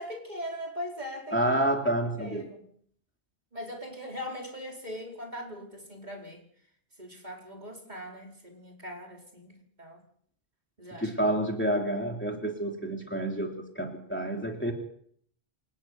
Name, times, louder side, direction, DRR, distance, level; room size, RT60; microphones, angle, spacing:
voice 1, 0.0-1.4 1.8-2.7 3.5-6.4 7.0-10.0 10.8-11.1, equal, 40° right, 0 dB, 5.0 m, -40 dB
voice 2, 1.3-2.5 10.9-14.7, right 1 dB, 10° left, 1 dB, 3.2 m, -29 dB
28.0 x 10.0 x 9.5 m, 0.62 s
omnidirectional pair, 1.1 m